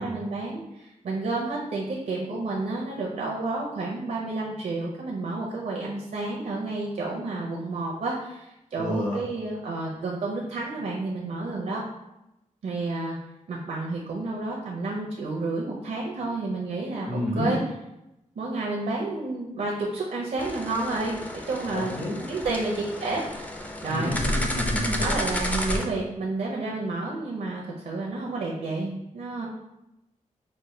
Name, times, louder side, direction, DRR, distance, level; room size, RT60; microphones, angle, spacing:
voice 1, 0.0-11.8 12.6-13.2 13.5-17.6 18.4-22.0 22.3-23.2 23.8-24.1 25.0-29.5, right 3 dB, 75° right, -2 dB, 0.6 m, -30 dB
voice 2, 8.8-9.2 17.0-17.5 21.7-22.2 23.9-24.9, left 1 dB, 70° left, -3 dB, 1.0 m, -29 dB
sound 1, 20.4-25.9, left 1 dB, 10° left, 0.4 m, -31 dB
5.0 x 2.1 x 3.1 m, 0.92 s
wide cardioid pair, 130°, 13 cm